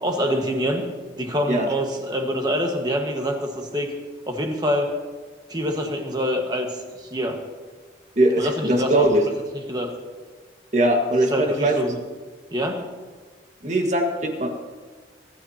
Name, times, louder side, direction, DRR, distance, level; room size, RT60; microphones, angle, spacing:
voice 1, 0.0-0.8 1.2-3.9 4.3-4.9 5.5-7.4 8.4-9.1 9.7-9.9 11.3-12.0 12.5-12.8, equal, 20° right, 2 dB, 1.6 m, -25 dB
voice 2, 8.1-9.2 10.7-11.8 13.6-14.5, right 1 dB, 40° right, 2 dB, 1.7 m, -20 dB
24.5 x 12.5 x 2.9 m, 1.4 s
head